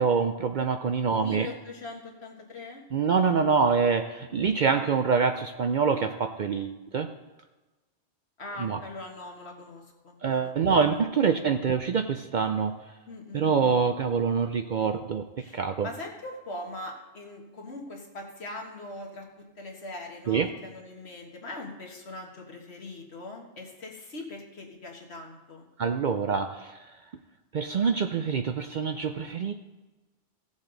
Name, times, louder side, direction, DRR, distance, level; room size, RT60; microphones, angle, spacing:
voice 1, 0.0-1.5 2.9-7.1 8.6-8.8 10.2-12.7 13.3-15.2 15.5-15.9 20.3-20.5 25.8-26.8 27.5-29.5, right 5 dB, 55° right, 7 dB, 0.5 m, -25 dB
voice 2, 1.1-2.8 8.4-10.7 13.1-13.8 15.4-25.7, left 2 dB, 65° left, 1 dB, 1.8 m, -41 dB
16.0 x 7.3 x 3.9 m, 1.2 s
omnidirectional pair, 1.2 m